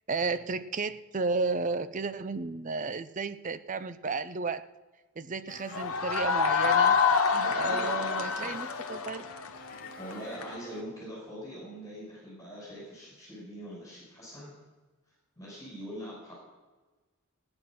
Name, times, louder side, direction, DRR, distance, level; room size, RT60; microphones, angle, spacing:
voice 1, 0.1-4.6 5.2-7.0 7.6-9.3, right 4 dB, 35° right, 12 dB, 0.5 m, -33 dB
sound 1, 5.5-10.8, left 3 dB, 40° left, 2.0 m, -48 dB
sound 2, 5.7-10.5, left 6 dB, 90° left, 1.1 m, -27 dB
voice 2, 7.3-8.6 10.0-14.5 15.4-16.3, equal, 15° left, -5 dB, 5.4 m, -42 dB
18.5 x 9.7 x 6.0 m, 1.2 s
head